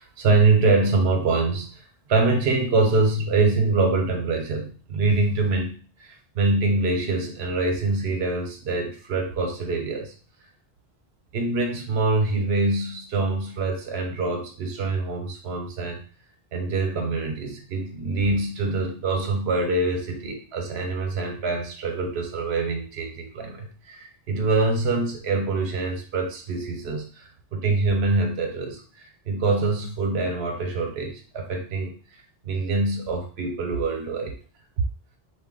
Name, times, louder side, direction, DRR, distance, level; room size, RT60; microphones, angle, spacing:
voice 1, 0.0-1.8 2.1-10.1 11.3-16.0 16.5-31.9 32.4-34.4, right 3 dB, 75° right, 3 dB, 0.9 m, -24 dB
2.6 x 2.1 x 3.7 m, 0.39 s
omnidirectional pair, 1.1 m